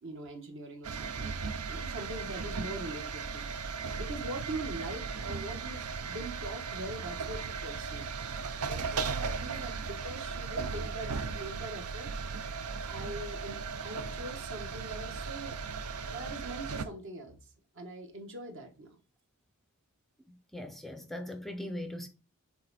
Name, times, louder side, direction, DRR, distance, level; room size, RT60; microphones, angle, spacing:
voice 1, 0.0-3.5 4.0-8.1 8.6-12.1 12.8-15.6 16.1-17.4 17.7-19.0, right 1 dB, 60° right, 1.3 m, -42 dB
sound 1, 0.8-16.8, right 5 dB, 80° right, 0.6 m, -37 dB
voice 2, 20.5-22.1, left 1 dB, ahead, 0.5 m, -39 dB
6.8 x 3.6 x 4.0 m
head